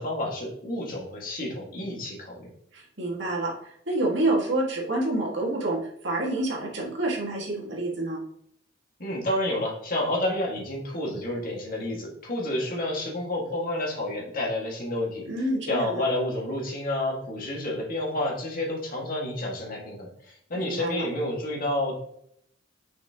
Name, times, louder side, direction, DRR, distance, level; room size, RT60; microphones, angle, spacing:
voice 1, 0.0-2.5 9.0-15.2 15.7-22.0, left 1 dB, 50° left, -2 dB, 2.0 m, -30 dB
voice 2, 2.7-8.2 15.3-16.0 20.5-21.1, right 2 dB, 65° right, -3 dB, 1.9 m, -28 dB
6.2 x 5.8 x 3.0 m, 0.69 s
head